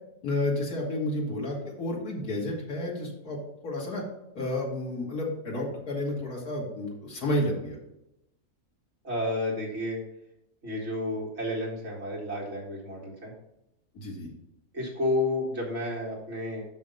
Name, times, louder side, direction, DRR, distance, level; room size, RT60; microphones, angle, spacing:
voice 1, 0.2-3.4 3.6-4.0 4.3-7.8 13.9-14.3, left 1 dB, 85° left, -3 dB, 2.4 m, -31 dB
voice 2, 9.0-10.0 10.6-13.3 14.7-16.6, left 1 dB, 45° right, -3 dB, 2.5 m, -31 dB
6.2 x 5.6 x 5.3 m, 0.88 s
omnidirectional pair, 1.6 m